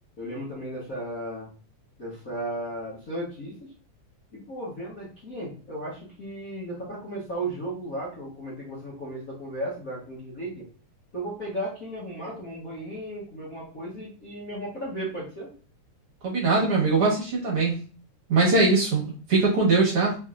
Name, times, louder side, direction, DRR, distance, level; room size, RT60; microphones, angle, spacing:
voice 1, 0.2-1.5 2.0-3.7 4.3-10.7 11.1-15.5, right 1 dB, 60° left, -6 dB, 0.9 m, -35 dB
voice 2, 16.2-17.8 18.3-20.2, right 3 dB, 55° right, -4 dB, 2.0 m, -21 dB
5.0 x 3.6 x 2.5 m, 0.38 s
omnidirectional pair, 3.5 m